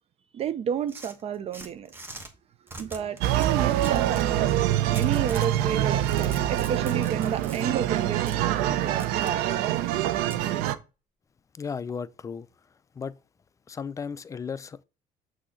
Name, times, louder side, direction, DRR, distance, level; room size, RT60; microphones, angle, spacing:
voice 1, 0.3-1.9 2.8-4.6 4.9-9.4, right 8 dB, 40° right, 0.5 m, -31 dB
sound 1, 0.9-2.3 2.7-4.3 4.9-5.5 5.9-7.6 8.3-8.4 9.0-9.4 10.3-10.4, right 2 dB, 15° right, 1.1 m, -43 dB
sound 2, 3.2-10.8, right 12 dB, 90° right, 0.5 m, -25 dB
voice 2, 11.5-12.5 12.9-13.2 13.7-14.8, left 6 dB, 20° left, 0.3 m, -35 dB
6.2 x 2.8 x 5.6 m
cardioid pair, 120°, 15 cm